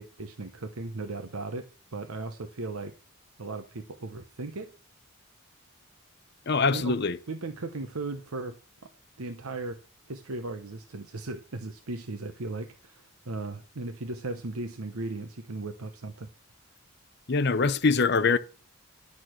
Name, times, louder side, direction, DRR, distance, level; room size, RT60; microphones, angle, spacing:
voice 1, 0.0-2.9 3.4-4.7 6.7-6.9 7.3-8.6 8.8-8.9 9.2-9.8 10.1-16.3, right 2 dB, 75° right, 1.0 m, -37 dB
voice 2, 6.5-7.2 17.3-18.4, left 4 dB, 50° left, 0.7 m, -23 dB
11.0 x 6.4 x 6.3 m
head